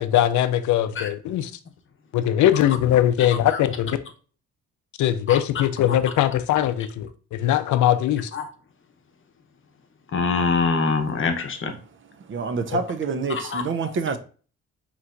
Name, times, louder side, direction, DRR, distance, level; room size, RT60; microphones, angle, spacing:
voice 1, 0.0-1.5 2.1-4.0 5.0-8.3 12.7-12.8, left 11 dB, 75° left, 0.5 m, -21 dB
voice 2, 10.1-11.7 13.3-13.6, left 4 dB, 45° left, 0.8 m, -24 dB
voice 3, 12.2-14.2, right 4 dB, 40° right, 0.5 m, -27 dB
5.5 x 3.0 x 2.5 m
cardioid pair, 90°, 30 cm